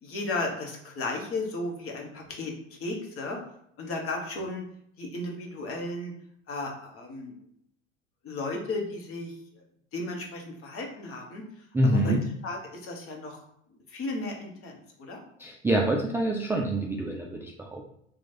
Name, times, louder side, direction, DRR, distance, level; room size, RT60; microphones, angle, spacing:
voice 1, 0.0-3.4 3.8-4.6 5.0-6.1 6.5-7.4 8.2-9.6 9.9-11.4 12.0-12.1 12.4-13.4 13.9-15.2, left 2 dB, 40° left, 1 dB, 1.1 m, -34 dB
voice 2, 11.7-12.2 15.4-18.0, right 1 dB, 5° right, -1 dB, 0.4 m, -26 dB
3.1 x 2.4 x 4.2 m, 0.71 s
hypercardioid pair, 70°, 35 cm